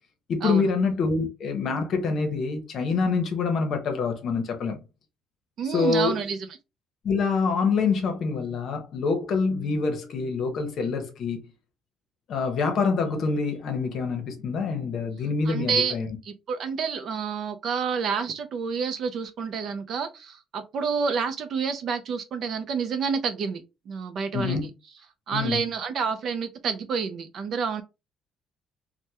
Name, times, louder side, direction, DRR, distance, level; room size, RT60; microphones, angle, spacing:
voice 1, 0.3-4.8 5.7-6.2 7.0-11.4 12.3-16.1 24.3-24.7 25.3-25.6, left 4 dB, 45° left, 0.8 m, -26 dB
voice 2, 5.6-6.4 15.5-16.0 16.2-24.7 25.3-27.8, right 6 dB, 45° right, 0.4 m, -29 dB
3.3 x 2.1 x 2.8 m
cardioid pair, 165°, 0 cm